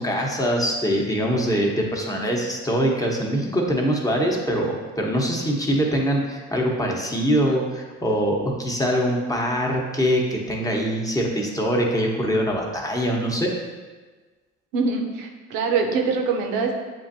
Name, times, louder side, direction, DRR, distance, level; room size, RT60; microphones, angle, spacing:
voice 1, 0.0-13.5, equal, 10° left, -1 dB, 0.9 m, -23 dB
voice 2, 14.7-16.7, right 4 dB, 90° right, 2 dB, 0.7 m, -23 dB
7.6 x 2.6 x 2.6 m, 1.3 s
supercardioid pair, 75°, 34 cm